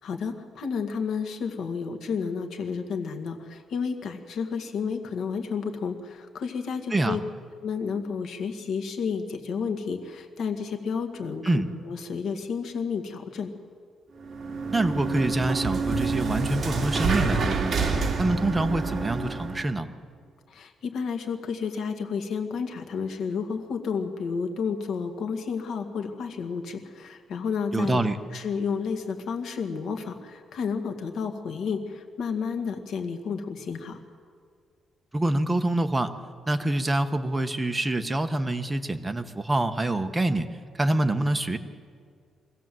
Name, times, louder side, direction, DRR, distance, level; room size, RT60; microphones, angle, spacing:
voice 1, 0.0-7.2 7.6-13.5 20.5-28.0 28.3-34.0, left 5 dB, 65° left, 5 dB, 1.9 m, -31 dB
sound 1, 14.2-19.7, right 4 dB, 40° right, 2.3 m, -28 dB
voice 2, 14.7-17.8 18.2-19.9 27.7-28.2 35.1-36.1 36.5-40.5 40.8-41.6, right 2 dB, 15° right, 7 dB, 1.1 m, -26 dB
24.0 x 16.0 x 7.7 m, 2.1 s
cardioid pair, 135°, 0 cm